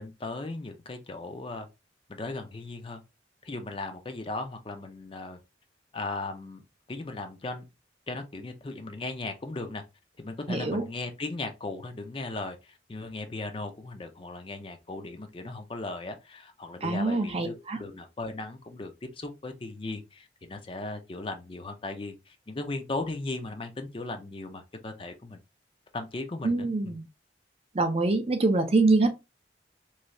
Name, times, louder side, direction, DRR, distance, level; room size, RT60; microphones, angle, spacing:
voice 1, 0.0-1.7 2.1-3.0 3.4-5.4 5.9-6.6 6.9-7.6 8.1-9.8 10.2-25.4 25.9-26.9, left 2 dB, 30° left, 0.4 m, -37 dB
voice 2, 10.5-10.8 16.8-17.8 26.4-27.0 27.7-29.1, right 3 dB, 35° right, 0.5 m, -25 dB
3.1 x 2.7 x 2.6 m
head